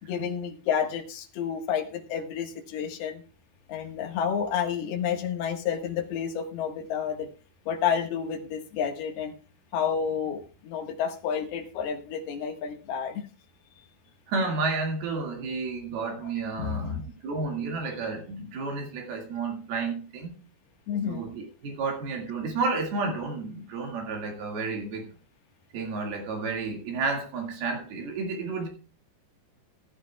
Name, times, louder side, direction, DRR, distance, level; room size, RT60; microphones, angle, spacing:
voice 1, 0.0-3.2 3.7-7.3 7.7-9.3 9.7-13.2 16.2-16.3 16.6-17.0 20.9-21.3, left 7 dB, 70° left, 4 dB, 3.4 m, -30 dB
voice 2, 14.3-20.4 21.1-25.0 25.7-28.7, right 4 dB, 70° right, 2 dB, 3.9 m, -31 dB
15.0 x 14.0 x 2.3 m, 0.37 s
omnidirectional pair, 4.8 m